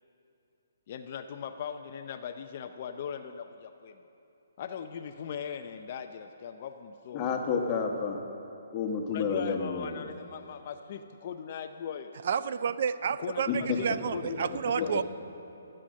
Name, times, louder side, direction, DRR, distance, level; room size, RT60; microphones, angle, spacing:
voice 1, 0.9-3.9 4.6-7.3 9.1-12.1 13.2-14.5 14.8-15.0, left 7 dB, 45° left, 7 dB, 0.5 m, -39 dB
voice 2, 7.1-8.2 8.7-10.1 13.5-13.8 14.8-14.9, left 5 dB, 25° left, 1 dB, 1.4 m, -30 dB
voice 3, 12.2-15.0, right 7 dB, 55° right, 14 dB, 0.4 m, -30 dB
15.0 x 7.7 x 6.4 m, 3.0 s
hypercardioid pair, 150°, 0 cm